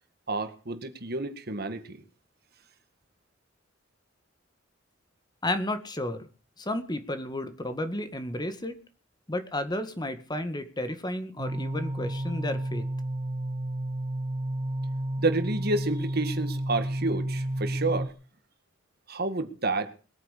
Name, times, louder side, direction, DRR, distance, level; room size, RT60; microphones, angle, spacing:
voice 1, 0.3-2.0 15.2-18.1 19.1-19.9, right 2 dB, 55° right, 9 dB, 1.9 m, -29 dB
voice 2, 5.4-6.3 6.6-8.8 9.3-12.9, left 1 dB, 20° left, 9 dB, 1.9 m, -32 dB
sound 1, 11.4-18.1, right 1 dB, 30° right, 1.7 m, -31 dB
21.5 x 9.4 x 6.8 m, 0.37 s
head